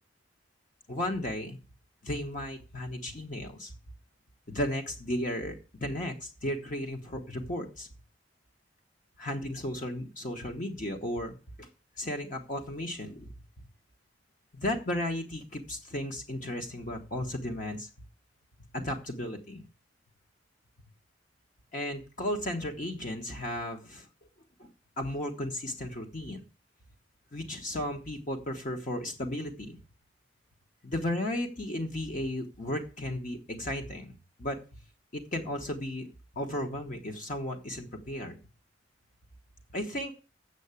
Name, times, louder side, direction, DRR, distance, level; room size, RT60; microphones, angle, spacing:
voice 1, 0.9-1.6 2.0-3.7 4.5-7.9 9.2-11.7 12.0-13.3 14.5-17.9 18.7-19.6 21.7-24.1 24.6-24.7 25.0-26.4 27.3-29.8 30.8-34.6 35.1-36.1 36.3-38.4 39.7-40.1, left 1 dB, 45° left, 3 dB, 1.1 m, -34 dB
8.1 x 6.7 x 8.2 m, 0.34 s
head